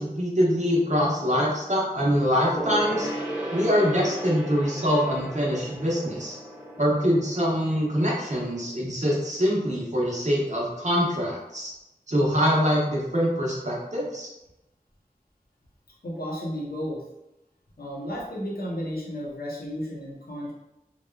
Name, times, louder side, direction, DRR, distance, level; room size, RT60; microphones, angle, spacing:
voice 1, 0.0-3.1 3.5-6.4 6.8-11.7 12.1-14.3, equal, 50° right, -4 dB, 0.8 m, -24 dB
Gong, 2.5-8.4 8.7-8.8, right 1 dB, 10° right, 1.0 m, -35 dB
voice 2, 16.0-17.0 17.8-20.5, equal, 75° left, -4 dB, 0.7 m, -33 dB
2.9 x 2.2 x 2.2 m, 0.91 s
wide cardioid pair, 40°, 16 cm